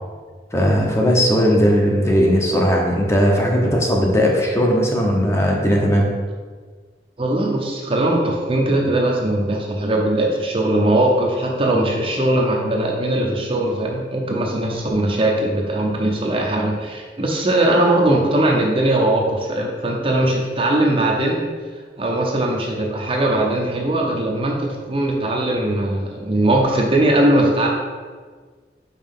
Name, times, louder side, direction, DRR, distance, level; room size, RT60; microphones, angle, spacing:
voice 1, 0.5-6.1, equal, 15° left, -1 dB, 0.8 m, -17 dB
voice 2, 7.2-21.4 22.0-27.7, right 1 dB, 30° right, 0 dB, 0.6 m, -20 dB
5.3 x 4.9 x 3.7 m, 1.5 s
head